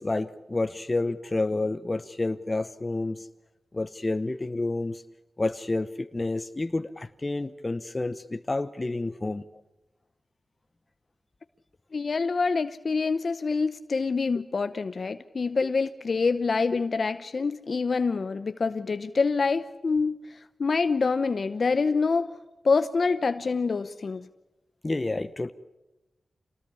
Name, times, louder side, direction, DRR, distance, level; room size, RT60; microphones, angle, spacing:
voice 1, 0.0-3.3 3.7-5.0 5.4-9.4 24.8-25.5, left 2 dB, 30° left, 0.9 m, -29 dB
voice 2, 11.9-22.4 22.6-24.3, left 4 dB, 60° left, 0.8 m, -26 dB
26.5 x 19.0 x 8.5 m
cardioid pair, 60°, 0 cm